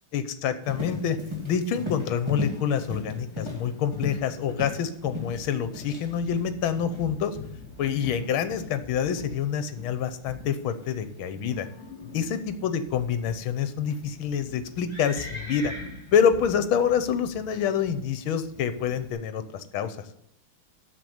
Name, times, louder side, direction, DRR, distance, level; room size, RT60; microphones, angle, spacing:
voice 1, 0.1-1.2 1.4-7.4 7.8-11.7 12.1-15.7 16.1-20.0, left 7 dB, 75° left, 11 dB, 1.7 m, -27 dB
Livestock farm animals working animals, 0.6-19.1, left 3 dB, 15° right, 2.6 m, -39 dB
8.1 x 6.9 x 7.9 m, 0.76 s
omnidirectional pair, 2.3 m